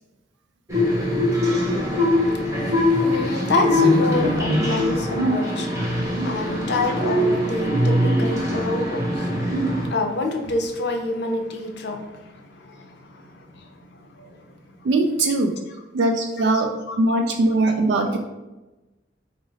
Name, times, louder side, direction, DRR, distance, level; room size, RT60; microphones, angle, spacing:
sound 1, 0.7-9.9, left 1 dB, 15° right, 0.8 m, -22 dB
voice 1, 2.1-13.7 14.1-14.4 16.9-17.0, left 2 dB, 65° left, 4 dB, 0.5 m, -28 dB
voice 2, 14.8-15.6 15.9-16.7 17.0-18.3, right 2 dB, 65° right, 4 dB, 0.3 m, -21 dB
3.8 x 2.0 x 3.9 m, 1.1 s
head